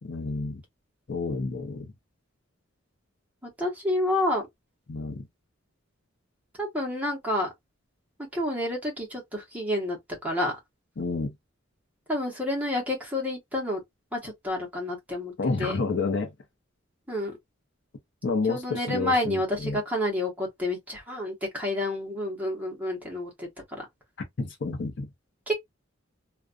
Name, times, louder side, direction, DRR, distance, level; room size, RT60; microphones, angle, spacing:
voice 1, 0.0-0.6 1.1-1.9 4.9-5.3 11.0-11.3 15.4-16.3 18.2-19.8 24.4-25.1, left 3 dB, 60° left, 0.6 m, -29 dB
voice 2, 3.4-4.5 6.6-7.5 8.3-10.6 12.1-13.8 14.1-15.8 17.1-17.4 18.5-23.9 25.5-25.6, left 1 dB, 10° right, 0.9 m, -29 dB
2.3 x 2.2 x 2.4 m
head